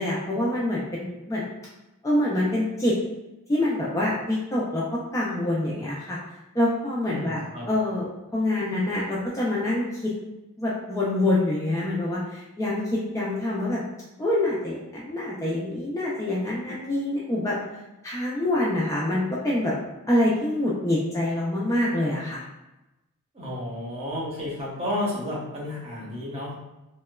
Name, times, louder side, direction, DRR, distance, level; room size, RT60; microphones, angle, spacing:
voice 1, 0.0-1.4 2.0-2.9 3.5-6.2 6.5-7.4 7.7-10.1 10.6-13.8 14.2-17.6 18.0-19.7 20.1-22.4, left 1 dB, 15° left, -6 dB, 0.3 m, -26 dB
voice 2, 7.1-7.7 23.3-26.5, left 1 dB, 25° right, -5 dB, 0.7 m, -31 dB
2.8 x 2.1 x 2.2 m, 0.98 s
head